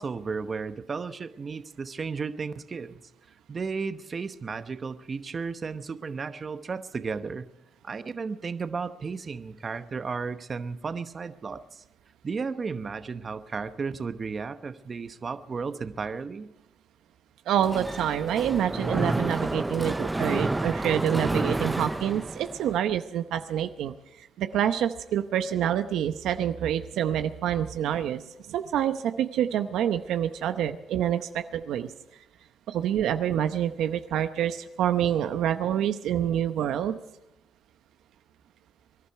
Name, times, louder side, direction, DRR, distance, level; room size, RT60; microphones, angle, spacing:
voice 1, 0.0-3.0 3.5-7.5 7.8-11.8 12.2-16.5, right 5 dB, 40° right, 10 dB, 1.0 m, -34 dB
voice 2, 17.5-23.9 24.4-28.2 28.5-31.9 32.7-37.0, right 10 dB, 80° right, 9 dB, 0.8 m, -27 dB
Mechanisms, 17.6-22.8, right 2 dB, 15° right, 0.5 m, -30 dB
24.5 x 11.5 x 4.7 m, 0.89 s
cardioid pair, 90°, 0 cm